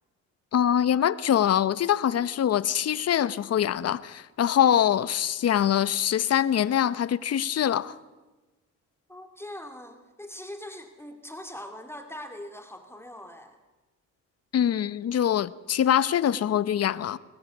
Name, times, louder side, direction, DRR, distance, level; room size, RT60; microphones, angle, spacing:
voice 1, 0.5-7.9 14.5-17.2, left 10 dB, 55° left, 1.0 m, -24 dB
voice 2, 9.1-13.6, left 1 dB, 10° left, 2.2 m, -42 dB
22.5 x 18.0 x 8.1 m
cardioid pair, 90°, 30 cm